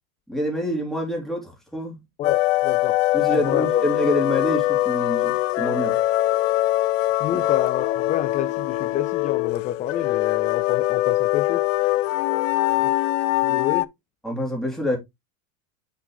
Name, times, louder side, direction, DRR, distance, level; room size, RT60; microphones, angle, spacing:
voice 1, 0.3-2.0 3.1-6.0 7.3-7.6 14.2-15.0, left 1 dB, ahead, 3.4 m, -26 dB
sound 1, 2.2-13.8, left 16 dB, 70° left, 0.6 m, -22 dB
voice 2, 2.2-3.0 3.3-3.8 7.2-11.7 12.8-13.1 13.4-13.9, left 11 dB, 20° left, 0.3 m, -28 dB
6.8 x 5.2 x 3.2 m
hypercardioid pair, 110°, 41 cm